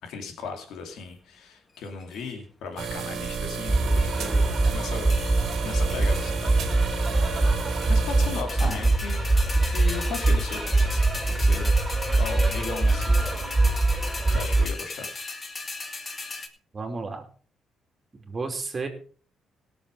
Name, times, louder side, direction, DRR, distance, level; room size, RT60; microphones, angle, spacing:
voice 1, 0.0-6.7 7.1-7.3 7.9-9.4 9.7-13.4 14.3-15.1, left 5 dB, 80° left, 4 dB, 2.7 m, -37 dB
sound 1, 1.8-2.3 2.9-3.4 3.8-4.5 5.1-5.6 5.9-6.1 6.5-6.6 6.9-7.5 7.8-16.5, left 3 dB, 35° left, 1.8 m, -37 dB
sound 2, 2.8-8.4, right 6 dB, 75° right, 1.9 m, -33 dB
sound 3, 3.7-14.7, right 2 dB, 10° right, 3.8 m, -23 dB
voice 2, 16.7-17.2 18.1-18.9, right 4 dB, 35° right, 4 dB, 3.0 m, -32 dB
17.5 x 7.0 x 5.0 m, 0.42 s
cardioid pair, 90°, 0 cm